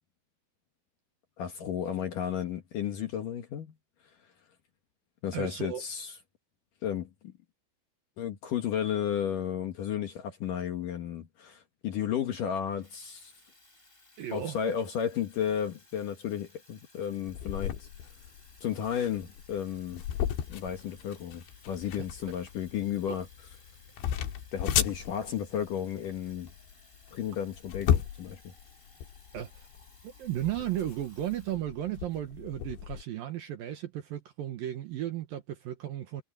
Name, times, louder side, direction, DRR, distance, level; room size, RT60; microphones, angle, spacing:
voice 1, 1.4-3.7 5.2-6.1 6.8-7.3 8.2-13.3 14.3-17.9 18.6-20.0 20.5-23.3 24.5-26.5 27.1-28.4, left 9 dB, 60° left, 2.5 m, -33 dB
voice 2, 5.3-5.8 14.2-14.6 22.2-22.3 23.1-23.2 29.3-29.7 30.0-36.2, right 12 dB, 65° right, 2.4 m, -35 dB
Water tap faucet / Fill (with liquid), 12.3-32.1, left 2 dB, 10° left, 4.5 m, -60 dB
sound 1, 17.3-33.0, left 10 dB, 80° left, 4.1 m, -35 dB
omnidirectional pair, 5.3 m